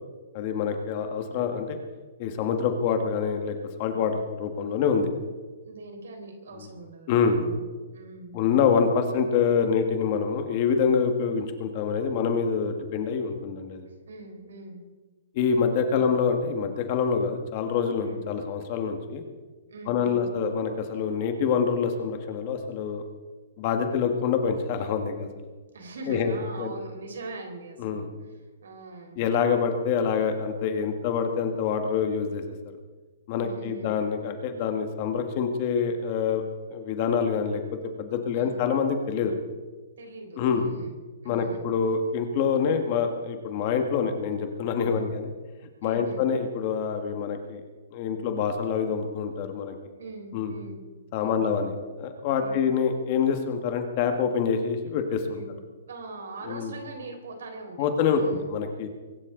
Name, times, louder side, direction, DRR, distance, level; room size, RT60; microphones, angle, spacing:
voice 1, 0.3-1.8 2.2-5.1 6.6-6.7 7.1-7.4 8.3-13.8 15.3-19.2 19.9-23.0 23.6-25.5 26.1-26.7 27.8-28.1 29.2-32.4 33.3-36.4 36.7-37.6 38.0-39.3 40.4-40.7 41.2-45.3 45.8-47.6 47.9-49.7 50.3-50.5 51.1-55.4 56.5-56.7 57.8-58.9, left 6 dB, 30° left, 6 dB, 1.6 m, -26 dB
voice 2, 5.6-8.4 14.1-14.8 15.9-16.1 18.0-18.2 19.7-20.3 25.7-28.1 28.6-29.2 33.3-33.9 38.3-38.6 40.0-40.9 41.2-41.7 44.8-45.1 45.8-46.3 50.0-50.8 51.2-51.4 52.4-52.7 55.3-55.5 55.9-58.5, right 2 dB, 80° right, 4 dB, 4.0 m, -42 dB
23.0 x 12.5 x 3.9 m, 1.3 s
hypercardioid pair, 170°, 0 cm